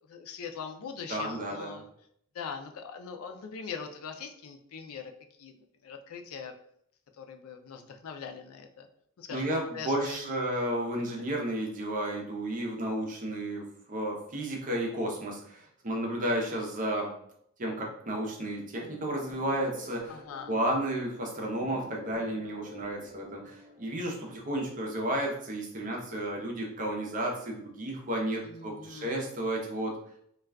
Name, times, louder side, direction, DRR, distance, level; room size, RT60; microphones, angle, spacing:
voice 1, 0.1-1.8 2.3-5.1 5.4-5.5 5.8-6.5 7.2-8.9 9.2-9.5 9.7-10.3 20.1-20.5 28.4-29.3, left 6 dB, 85° left, 5 dB, 0.4 m, -41 dB
voice 2, 1.1-1.8 9.3-17.1 17.6-20.2 20.5-30.0, right 1 dB, 40° right, 0 dB, 0.6 m, -32 dB
sound 1, 18.7-24.4, left 1 dB, 5° right, 0.9 m, -51 dB
2.3 x 2.2 x 3.3 m, 0.69 s
head